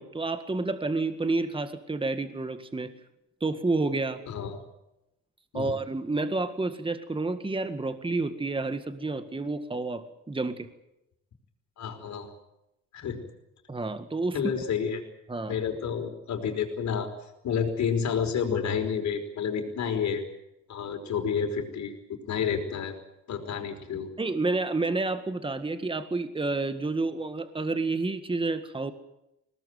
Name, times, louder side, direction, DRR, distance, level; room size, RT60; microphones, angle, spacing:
voice 1, 0.0-2.9 3.4-4.2 5.5-10.7 13.7-14.4 15.3-15.5 24.2-28.9, right 3 dB, 15° right, 9 dB, 1.9 m, -29 dB
voice 2, 4.3-4.6 5.5-5.7 11.8-12.3 12.9-13.2 14.3-15.0 15.5-17.1 17.4-20.2 20.7-22.9 23.3-24.1, left 7 dB, 70° left, 6 dB, 5.1 m, -30 dB
21.5 x 19.0 x 9.3 m, 0.89 s
cardioid pair, 90°, 30 cm